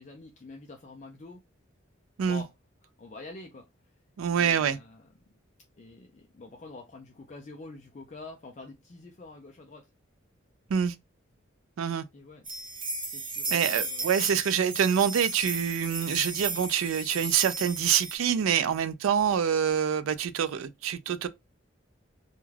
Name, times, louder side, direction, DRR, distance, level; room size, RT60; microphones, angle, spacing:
voice 1, 0.0-1.4 2.3-2.5 2.8-3.7 4.3-5.1 5.8-9.9 12.1-12.5 13.1-14.1 18.5-18.7, left 3 dB, 35° left, 0.4 m, -46 dB
voice 2, 4.2-4.8 10.7-10.9 11.8-12.0 13.5-21.3, right 8 dB, 85° right, 0.4 m, -26 dB
sound 1, 12.4-18.2, right 2 dB, 25° right, 0.7 m, -34 dB
2.3 x 2.2 x 3.2 m
head